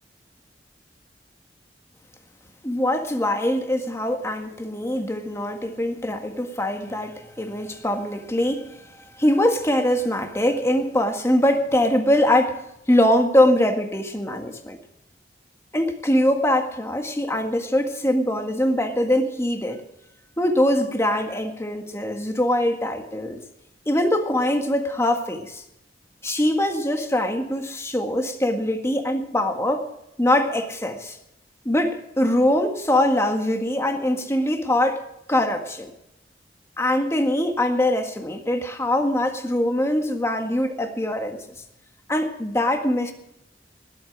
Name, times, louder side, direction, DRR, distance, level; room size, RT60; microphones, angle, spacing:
voice 1, 2.6-8.9 9.2-14.8 15.7-19.8 20.4-23.4 23.8-25.6 26.2-29.9 30.2-31.2 31.6-35.0 35.3-35.9 36.8-41.4 42.1-43.1, left 1 dB, 15° left, 5 dB, 1.7 m, -22 dB
20.0 x 8.5 x 6.2 m, 0.83 s
head